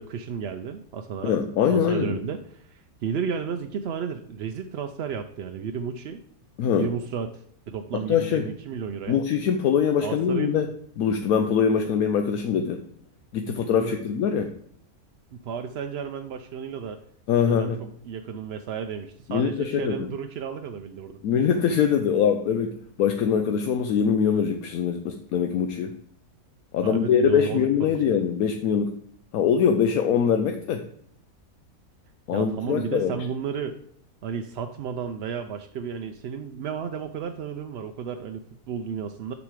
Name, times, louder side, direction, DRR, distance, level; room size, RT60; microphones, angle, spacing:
voice 1, 0.0-1.3 1.7-6.2 6.7-9.2 10.0-10.6 13.5-14.0 15.3-17.0 17.5-21.2 26.8-28.0 32.3-33.8 34.2-39.3, right 7 dB, 65° right, 6 dB, 0.6 m, -33 dB
voice 2, 1.2-2.2 6.6-6.9 8.1-8.5 9.1-10.7 11.0-12.8 13.3-14.5 17.3-17.8 19.3-20.1 21.2-25.9 26.7-29.0 29.3-30.8 32.3-33.2, left 7 dB, 75° left, 6 dB, 1.1 m, -23 dB
7.0 x 6.1 x 4.8 m, 0.67 s
omnidirectional pair, 1.6 m